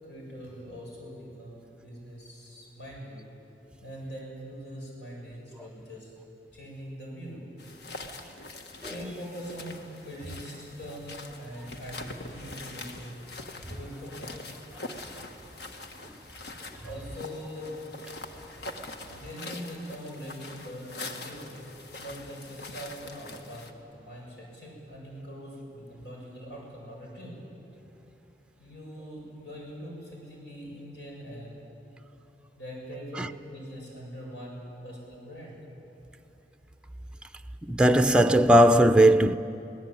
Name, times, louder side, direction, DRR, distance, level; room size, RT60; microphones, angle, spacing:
voice 1, 0.0-3.2 3.8-6.1 6.5-7.4 8.2-8.4 8.9-13.2 13.6-14.4 16.8-17.8 19.0-21.5 22.0-23.7 23.9-27.4 28.6-31.6 32.6-35.6, equal, 85° left, 7.6 m, -42 dB
sound 1, 7.6-23.7, left 2 dB, 65° left, 1.5 m, -43 dB
voice 2, 37.6-39.4, right 1 dB, 5° right, 0.5 m, -18 dB
23.5 x 18.5 x 9.0 m
head